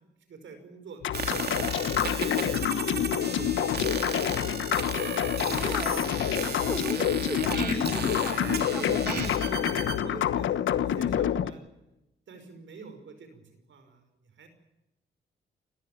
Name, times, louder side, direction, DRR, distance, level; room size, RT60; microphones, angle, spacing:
voice 1, 0.2-1.0 1.5-4.2 6.7-6.8 8.6-9.2 9.5-11.6 12.3-14.0 14.4-14.5, right 4 dB, 75° right, 8 dB, 5.6 m, -45 dB
sound 1, 1.0-11.5, left 10 dB, 80° left, 1.1 m, -27 dB
sound 2, 1.1-10.0, right 5 dB, 55° right, 3.6 m, -35 dB
voice 2, 5.5-6.1 6.4-9.3, right 1 dB, 5° right, 9 dB, 1.9 m, -37 dB
30.0 x 13.5 x 8.8 m, 0.93 s
cardioid pair, 70°, 20 cm